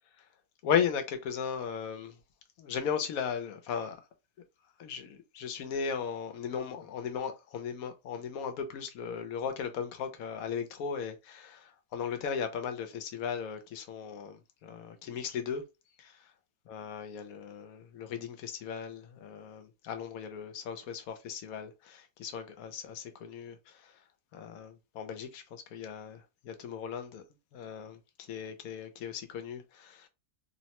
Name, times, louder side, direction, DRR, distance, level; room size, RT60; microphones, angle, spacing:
voice 1, 0.6-2.2 2.6-4.0 4.8-15.6 16.0-16.3 16.7-24.0 24.3-27.2 27.5-30.1, left 7 dB, 75° left, 1.0 m, -37 dB
3.1 x 2.1 x 2.8 m
omnidirectional pair, 1.6 m